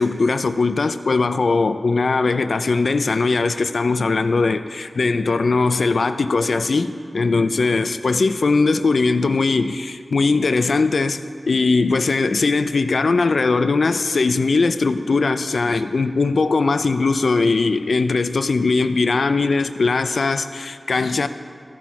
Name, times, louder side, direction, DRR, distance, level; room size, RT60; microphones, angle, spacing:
voice 1, 0.0-21.3, left 3 dB, 85° left, 11 dB, 0.3 m, -20 dB
14.0 x 5.9 x 4.7 m, 2.1 s
wide cardioid pair, 80°, 0 cm